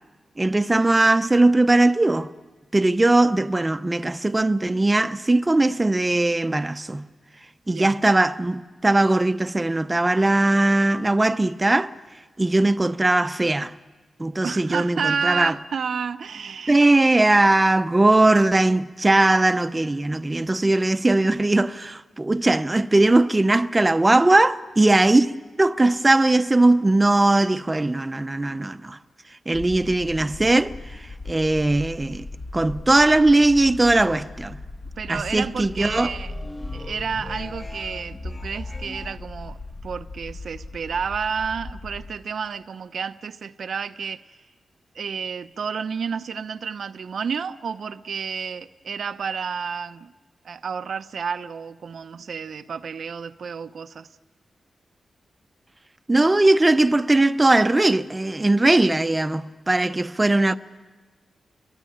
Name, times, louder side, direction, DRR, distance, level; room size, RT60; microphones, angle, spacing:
voice 1, 0.4-2.3 2.7-7.0 7.7-11.9 12.4-13.7 14.2-15.5 16.7-29.0 29.5-32.3 32.5-34.6 35.1-36.1 56.1-60.6, right 2 dB, 20° right, 0.8 m, -19 dB
voice 2, 14.4-16.9 28.4-28.6 35.0-36.3 36.7-44.4 44.9-50.1 50.4-54.1, right 6 dB, 75° right, 0.8 m, -30 dB
sound 1, 29.5-42.1, left 2 dB, 60° left, 5.4 m, -38 dB
sound 2, 35.8-39.2, left 1 dB, 20° left, 1.5 m, -37 dB
29.0 x 23.0 x 8.8 m
cardioid pair, 75°, 0 cm